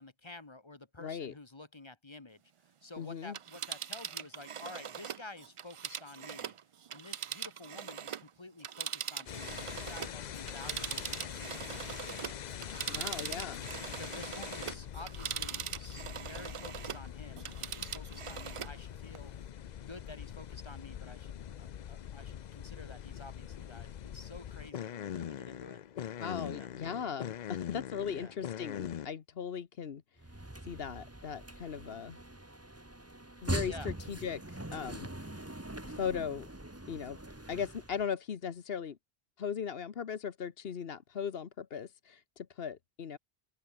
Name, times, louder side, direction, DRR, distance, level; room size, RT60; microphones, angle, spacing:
voice 1, 0.0-2.4 2.8-6.5 6.9-12.7 14.0-19.3 19.8-25.8 26.5-26.7 28.2-28.3 33.6-33.9, left 2 dB, 30° left, 1.1 m, -51 dB
voice 2, 1.0-1.3 3.0-3.3 12.9-13.7 26.2-30.2 30.6-32.2 33.4-35.4 35.8-36.5 36.9-37.2 37.5-39.0 39.4-43.2, left 7 dB, 70° left, 1.2 m, -38 dB
Telephone, 3.2-8.3 8.6-17.1 17.4-18.8 19.1-19.2, right 8 dB, 55° right, 0.3 m, -41 dB
sound 1, 9.3-29.1, left 9 dB, 55° left, 0.6 m, -43 dB
sound 2, 30.2-38.1, right 1 dB, 15° right, 1.6 m, -42 dB
open air
omnidirectional pair, 1.1 m